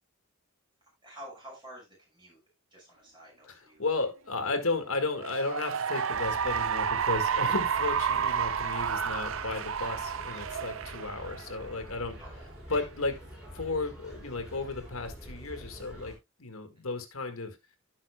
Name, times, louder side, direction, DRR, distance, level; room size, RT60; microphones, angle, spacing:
voice 1, 1.0-2.4 2.7-4.0 12.2-12.5 16.8-17.0, right 1 dB, 20° right, 5.7 m, -50 dB
voice 2, 3.5-12.2 12.7-13.2 13.5-17.6, left 3 dB, 75° left, 1.9 m, -34 dB
Cheering / Applause, 5.1-11.8, right 7 dB, 65° right, 0.6 m, -30 dB
sound 1, 6.1-16.1, equal, 5° right, 4.6 m, -46 dB
16.0 x 5.8 x 2.3 m
head